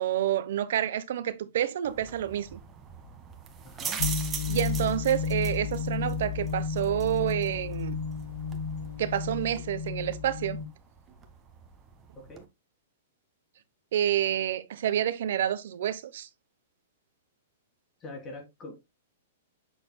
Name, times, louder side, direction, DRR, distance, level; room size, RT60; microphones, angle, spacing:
voice 1, 0.0-2.6 4.5-8.0 9.0-10.6 13.9-16.3, right 11 dB, 65° right, 0.8 m, -28 dB
sound 1, 1.8-12.5, right 7 dB, 20° right, 1.5 m, -42 dB
voice 2, 3.6-4.1 12.1-12.5 18.0-18.8, left 2 dB, 25° left, 3.2 m, -43 dB
sound 2, 4.0-10.7, left 5 dB, 60° left, 2.2 m, -32 dB
8.2 x 6.4 x 2.2 m
hypercardioid pair, 140°, 0 cm